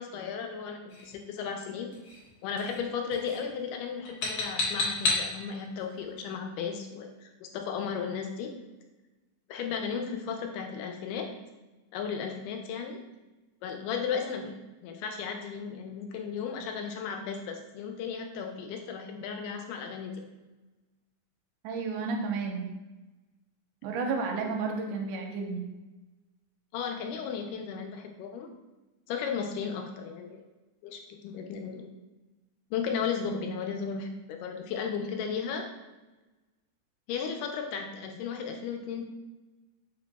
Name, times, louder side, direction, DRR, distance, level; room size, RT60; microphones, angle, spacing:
voice 1, 0.0-1.9 2.4-8.5 9.5-11.3 11.9-13.0 13.6-14.5 14.8-20.1 26.7-28.5 29.1-30.4 30.8-31.9 32.7-35.7 37.1-39.0, left 6 dB, 90° left, 4 dB, 2.1 m, -35 dB
sound 1, 0.9-1.1 1.9-2.3 2.6-2.9 3.1-3.5 4.0-5.3, left 2 dB, 65° left, 1.3 m, -31 dB
voice 2, 21.6-22.7 23.8-25.6, right 4 dB, 85° right, 2 dB, 2.1 m, -32 dB
5.2 x 2.2 x 4.0 m, 1.1 s
omnidirectional pair, 3.6 m